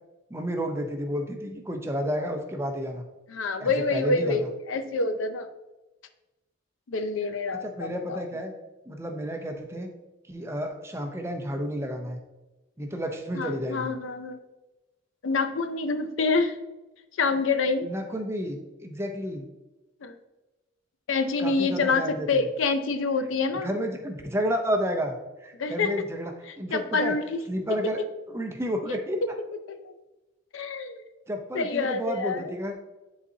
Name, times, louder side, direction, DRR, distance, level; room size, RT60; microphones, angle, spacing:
voice 1, 0.3-3.1 3.6-4.5 7.6-8.5 8.9-9.9 10.3-12.2 12.8-14.0 17.8-19.5 21.4-22.4 23.6-26.3 26.6-27.2 27.5-28.0 28.3-29.2 31.3-32.7, equal, 15° right, 4 dB, 0.6 m, -31 dB
voice 2, 3.3-5.5 6.9-8.2 13.3-14.4 15.2-16.6 17.2-17.9 20.0-20.1 21.1-23.7 25.6-25.9 26.7-27.4 30.5-31.0 31.5-32.5, left 4 dB, 75° left, 9 dB, 0.5 m, -27 dB
10.0 x 4.1 x 2.7 m, 1.1 s
head